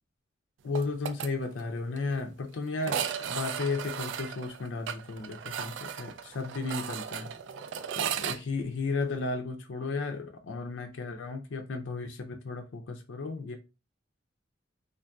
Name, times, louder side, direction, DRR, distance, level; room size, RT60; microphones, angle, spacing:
voice 1, 0.6-7.3 7.9-13.6, left 3 dB, 75° left, 0.5 m, -34 dB
sound 1, 0.7-1.3 1.6-1.7 2.0-2.1 2.8-8.4, right 8 dB, 70° right, 0.3 m, -35 dB
3.4 x 2.6 x 2.2 m
head